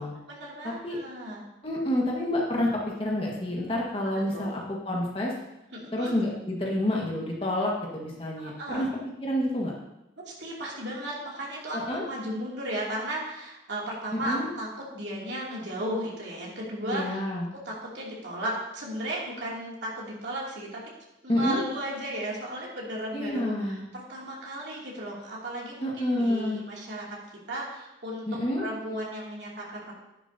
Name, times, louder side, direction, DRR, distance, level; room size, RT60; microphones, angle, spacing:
voice 1, 0.3-1.4 4.3-4.4 5.7-6.1 8.4-8.9 10.2-17.2 17.6-20.8 21.2-27.0 27.5-28.3 28.6-29.9, right 1 dB, 65° right, -4 dB, 2.7 m, -35 dB
voice 2, 1.6-2.7 3.0-5.3 5.9-9.7 11.7-12.1 14.1-14.5 16.9-17.5 21.3-21.6 23.1-23.8 25.8-26.6 28.3-28.7, left 1 dB, 30° left, -2 dB, 1.6 m, -28 dB
10.5 x 10.5 x 2.8 m, 0.93 s
head